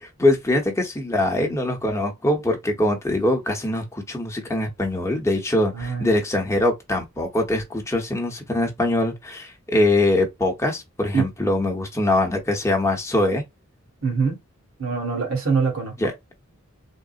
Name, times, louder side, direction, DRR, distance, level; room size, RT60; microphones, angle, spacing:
voice 1, 0.0-13.4 16.0-16.1, left 1 dB, 15° left, 0.8 m, -23 dB
voice 2, 5.7-6.1 11.1-11.3 14.0-14.4 14.8-15.9, right 5 dB, 65° right, 1.4 m, -23 dB
3.7 x 2.0 x 2.4 m
head